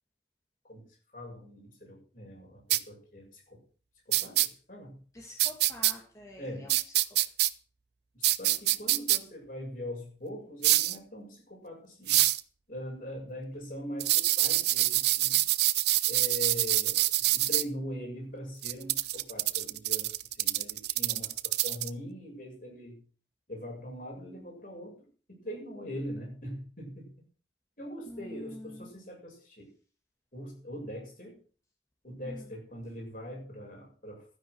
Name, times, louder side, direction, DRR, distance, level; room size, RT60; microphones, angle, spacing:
voice 1, 1.1-3.6 4.1-5.0 6.4-6.7 8.1-12.3 12.7-15.4 16.1-23.0 23.5-27.1 27.8-29.7 30.3-31.4 32.0-34.3, equal, 50° left, 0 dB, 6.8 m, -42 dB
sound 1, 2.7-2.8 4.1-4.5 5.4-5.9 6.7-7.5 8.2-9.2 10.6-11.0 12.1-12.4 14.0-17.6 18.6-21.9, right 16 dB, 65° right, 0.7 m, -26 dB
voice 2, 5.1-6.9 20.4-20.5 28.1-28.9 32.2-32.5, left 1 dB, 20° left, -1 dB, 2.3 m, -46 dB
13.5 x 10.0 x 6.3 m, 0.41 s
head